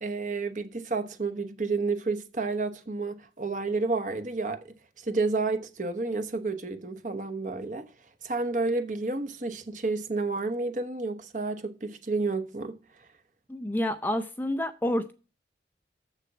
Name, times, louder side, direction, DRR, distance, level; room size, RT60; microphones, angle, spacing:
voice 1, 0.0-4.7 5.0-7.9 8.2-12.8, right 3 dB, 45° right, 1.0 m, -30 dB
voice 2, 13.5-15.1, left 1 dB, 10° left, 0.5 m, -29 dB
7.3 x 6.7 x 6.0 m
head